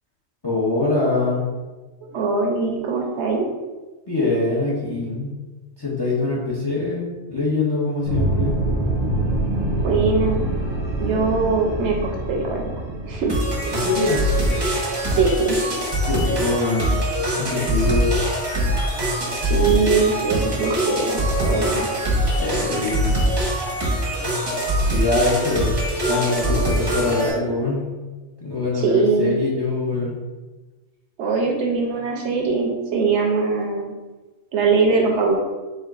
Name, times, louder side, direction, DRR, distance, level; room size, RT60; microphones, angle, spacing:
voice 1, 0.4-1.5 4.1-5.3 5.8-8.6 13.7-14.3 16.1-16.9 17.4-18.1 22.4-23.1 24.8-25.7 26.1-27.9 28.4-30.2, left 2 dB, 30° left, -4 dB, 0.4 m, -23 dB
voice 2, 2.0-3.5 9.8-10.4 11.0-12.7 13.1-13.3 15.1-15.6 19.4-21.9 28.7-29.4 31.2-33.9 34.5-35.4, right 4 dB, 65° right, 1 dB, 0.8 m, -21 dB
sound 1, 8.0-14.8, right 1 dB, 80° left, 2.0 m, -25 dB
sound 2, 13.3-27.3, right 1 dB, 25° right, 0.6 m, -23 dB
4.5 x 3.5 x 2.4 m, 1.2 s
omnidirectional pair, 1.4 m